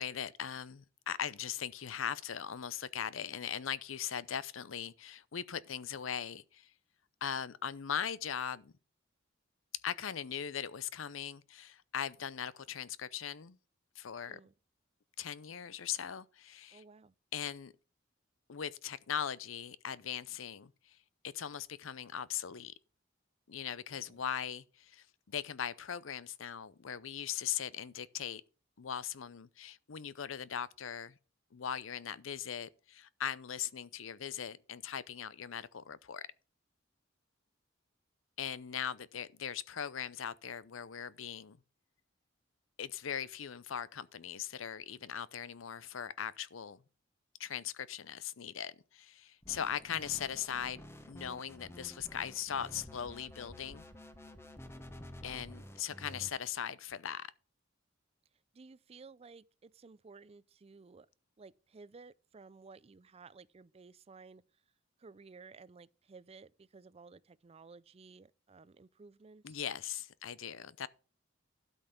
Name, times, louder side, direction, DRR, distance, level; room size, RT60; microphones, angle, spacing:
voice 1, 0.0-6.7 7.2-8.7 9.8-13.6 14.0-14.4 15.2-16.8 17.3-17.7 18.5-21.0 21.2-22.7 23.5-28.4 28.8-31.2 31.5-36.3 38.4-41.6 42.8-46.8 47.4-53.9 55.2-57.3 69.4-70.9, left 8 dB, 90° left, 0.6 m, -40 dB
voice 2, 16.7-17.1 23.9-24.2 58.5-61.1 61.4-64.4 65.0-69.6, right 4 dB, 30° right, 0.4 m, -55 dB
sound 1, 49.4-56.3, left 1 dB, 15° left, 1.1 m, -51 dB
12.5 x 5.5 x 5.9 m
head